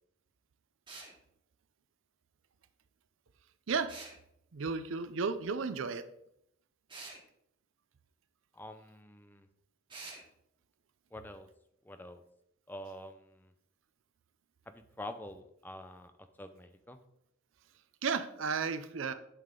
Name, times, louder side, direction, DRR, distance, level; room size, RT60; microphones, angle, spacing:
sound 1, 0.9-1.1 3.9-4.2 6.9-7.2 9.9-10.2, right 3 dB, 25° right, 2.2 m, -46 dB
voice 1, 4.5-6.0 18.0-19.1, right 5 dB, 75° right, 11 dB, 0.5 m, -33 dB
voice 2, 8.5-9.5 11.1-11.5 11.8-12.2 12.7-13.5 14.7-17.0, left 1 dB, 10° left, 8 dB, 0.5 m, -47 dB
11.0 x 5.6 x 3.8 m, 0.75 s
head